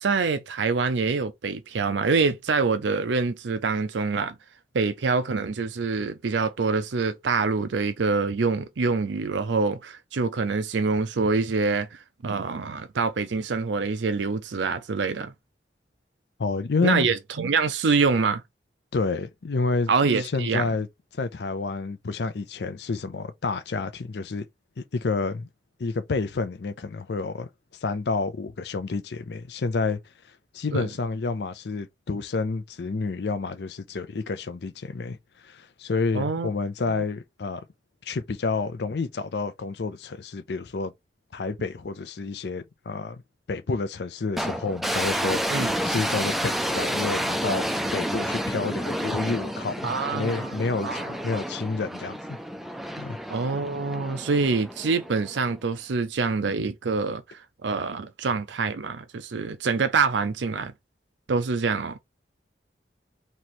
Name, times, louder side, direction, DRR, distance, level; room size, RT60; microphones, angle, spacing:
voice 1, 0.0-4.4 4.7-15.3 16.8-18.4 19.9-20.7 30.7-30.9 36.1-36.5 36.9-37.0 45.5-45.7 49.8-50.5 50.8-51.1 53.3-60.7 61.3-62.0, right 4 dB, 90° right, 0.5 m, -25 dB
voice 2, 16.4-17.1 18.9-19.9 20.2-20.9 21.1-24.4 24.8-25.5 25.8-27.5 27.8-30.0 30.5-35.2 35.4-37.6 38.0-40.9 41.3-43.2 43.5-52.4 53.0-53.2, left 3 dB, 70° left, 0.5 m, -29 dB
sound 1, 44.4-55.6, equal, ahead, 0.3 m, -30 dB
3.1 x 3.0 x 4.2 m
head